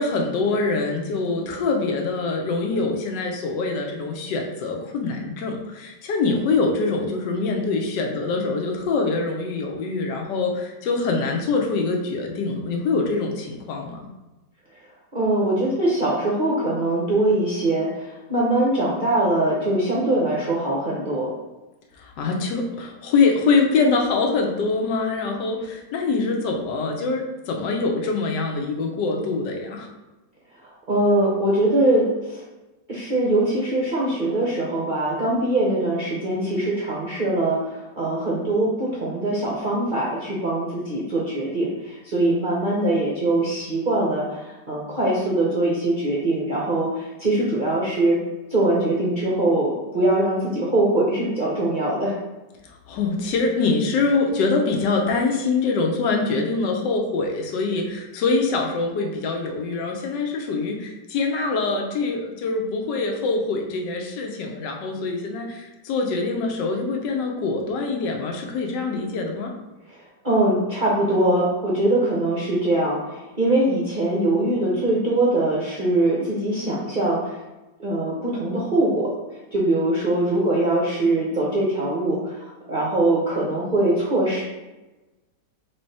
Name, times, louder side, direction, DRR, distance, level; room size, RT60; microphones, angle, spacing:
voice 1, 0.0-14.0 22.0-29.9 52.9-69.5, left 3 dB, 80° left, 2 dB, 1.3 m, -24 dB
voice 2, 15.1-21.3 30.9-32.4 32.9-48.2 48.5-52.1 70.2-73.0 73.4-77.4 77.8-79.1 79.5-84.4, right 1 dB, 45° right, -5 dB, 0.6 m, -22 dB
3.8 x 3.3 x 4.0 m, 1.1 s
omnidirectional pair, 1.9 m